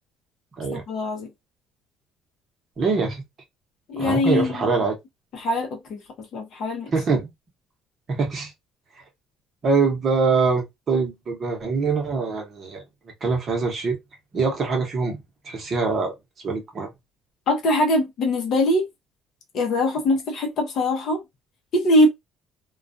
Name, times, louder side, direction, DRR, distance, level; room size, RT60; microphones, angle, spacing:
voice 1, 0.7-1.3 3.9-4.8 5.3-6.0 6.3-6.9 17.5-18.9 19.5-21.2 21.7-22.1, left 1 dB, 45° left, 0.7 m, -22 dB
voice 2, 2.8-3.2 4.0-4.9 6.9-7.3 8.1-8.5 9.6-12.8 13.2-14.0 14.3-15.2 15.5-16.1 16.4-16.9, right 4 dB, 30° right, 0.9 m, -23 dB
2.3 x 2.3 x 2.5 m
cardioid pair, 165°, 0 cm